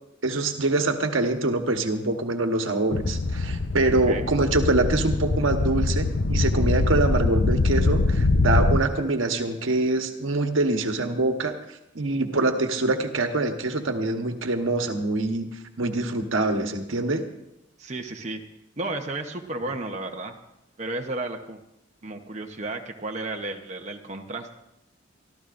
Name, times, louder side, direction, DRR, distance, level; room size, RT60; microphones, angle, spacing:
voice 1, 0.2-11.5 11.9-15.5 15.8-17.2, right 2 dB, 85° right, 5 dB, 1.3 m, -24 dB
sound 1, 2.9-8.8, left 3 dB, 70° left, 0.8 m, -23 dB
voice 2, 17.8-18.4 18.8-20.3 20.8-21.6 22.0-24.5, right 2 dB, 35° right, 3 dB, 0.9 m, -33 dB
24.0 x 14.0 x 2.6 m, 0.88 s
head